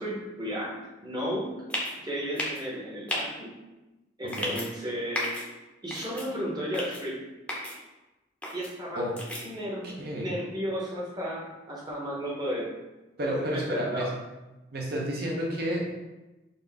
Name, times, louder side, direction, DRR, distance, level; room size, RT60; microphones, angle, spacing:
voice 1, 0.0-1.5 2.0-3.5 4.2-5.4 5.8-7.2 8.5-9.0 9.4-12.7 13.2-14.1, equal, 20° right, -4 dB, 0.9 m, -34 dB
sound 1, 1.7-1.9 2.4-2.6 3.1-3.2 4.3-4.7 5.1-5.4 5.9-6.3 6.7-7.0 7.5-7.7 8.4-8.7 9.2-9.4, left 1 dB, 5° left, 0.7 m, -32 dB
voice 2, 4.2-4.6 9.0-9.2 9.8-10.3 13.2-14.1 14.7-16.0, equal, 55° right, -1 dB, 0.8 m, -31 dB
4.1 x 2.6 x 3.4 m, 1.1 s
head